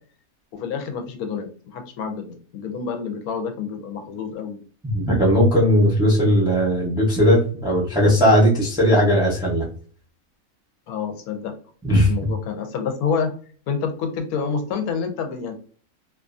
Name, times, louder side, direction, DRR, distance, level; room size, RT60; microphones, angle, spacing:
voice 1, 0.5-4.6 10.9-11.5 12.1-13.3 13.7-15.5, left 6 dB, 90° left, 6 dB, 1.1 m, -28 dB
voice 2, 4.8-9.7 11.8-12.1, equal, 5° right, -3 dB, 0.4 m, -18 dB
2.6 x 2.4 x 2.4 m, 0.43 s
omnidirectional pair, 1.5 m